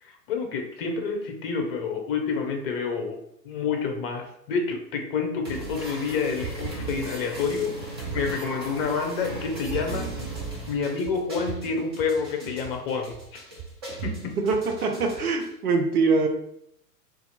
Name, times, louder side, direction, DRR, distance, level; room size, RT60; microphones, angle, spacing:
voice 1, 0.0-3.2 3.4-10.1 10.7-13.4 14.0-14.4, left 5 dB, 35° left, 3 dB, 0.7 m, -29 dB
sound 1, 5.4-15.5, right 3 dB, 20° right, 0.3 m, -36 dB
voice 2, 14.4-16.3, right 4 dB, 60° right, 3 dB, 0.9 m, -23 dB
2.8 x 2.6 x 3.9 m, 0.76 s
figure-of-eight pair, 110°, 49 cm